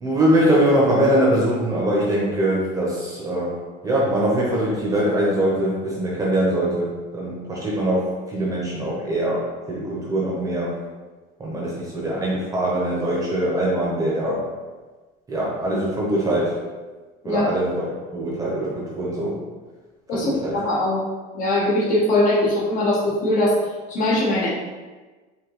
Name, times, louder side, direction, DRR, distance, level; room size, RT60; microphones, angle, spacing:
voice 1, 0.0-3.5 3.8-9.4 9.7-10.7 11.4-14.4 15.3-16.6 17.2-17.8 18.1-19.4 20.1-20.6, right 1 dB, 15° right, -5 dB, 0.9 m, -22 dB
voice 2, 20.1-21.0 21.3-23.6 23.9-24.5, left 1 dB, 40° left, -5 dB, 1.2 m, -21 dB
5.1 x 2.9 x 3.1 m, 1.3 s
cardioid pair, 165°, 20 cm